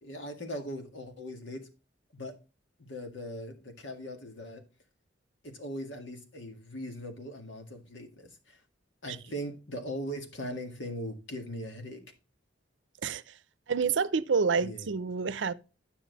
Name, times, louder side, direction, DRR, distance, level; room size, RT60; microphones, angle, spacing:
voice 1, 0.0-1.6 2.1-2.3 2.8-4.6 5.4-8.6 9.0-12.0 14.6-14.9, equal, 75° left, 1.9 m, -40 dB
voice 2, 13.7-15.5, right 5 dB, 70° right, 0.6 m, -28 dB
10.5 x 5.7 x 4.0 m
head